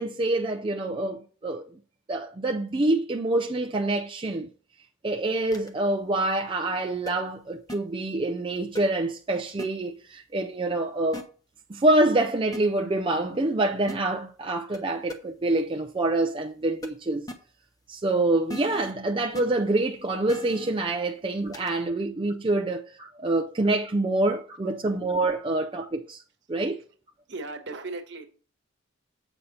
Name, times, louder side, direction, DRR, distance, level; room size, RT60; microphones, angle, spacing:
voice 1, 0.0-1.7 2.1-4.5 5.0-11.3 11.7-17.3 17.9-26.2 26.5-26.8, right 2 dB, 25° right, 0.4 m, -26 dB
sound 1, 5.5-5.7 7.1-7.2 7.7-7.8 8.7-8.8 9.6-9.7 11.1-11.2 12.5-12.6 13.9-14.0 14.7-14.8 15.1-15.2 16.8-16.9 17.3-17.4 18.5-18.9 19.3-19.4 20.3-20.7 21.5-21.7, equal, 20° left, 0.8 m, -37 dB
voice 2, 27.3-28.3, right 3 dB, 55° right, 1.2 m, -36 dB
7.9 x 5.5 x 4.2 m
head